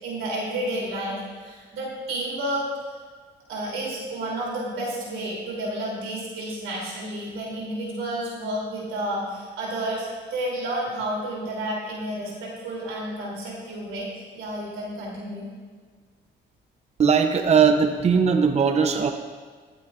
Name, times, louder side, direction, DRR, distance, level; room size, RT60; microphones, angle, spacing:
voice 1, 0.0-2.7 3.5-15.5, right 1 dB, 80° right, -4 dB, 3.1 m, -31 dB
voice 2, 17.0-19.1, right 6 dB, 35° right, 6 dB, 0.6 m, -19 dB
18.5 x 8.1 x 2.5 m, 1.5 s
cardioid pair, 90°, 20 cm